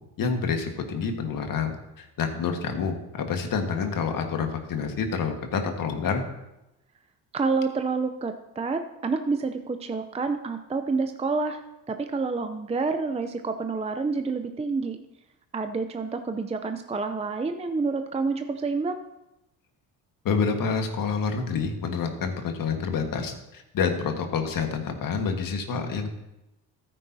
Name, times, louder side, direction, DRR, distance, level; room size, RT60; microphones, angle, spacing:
voice 1, 0.2-6.2 20.2-26.1, left 5 dB, 55° left, 4 dB, 1.7 m, -28 dB
voice 2, 7.3-11.6 11.9-15.0 15.5-19.0, right 4 dB, 15° right, 7 dB, 0.6 m, -28 dB
14.0 x 9.0 x 2.8 m, 0.92 s
cardioid pair, 90°, 40 cm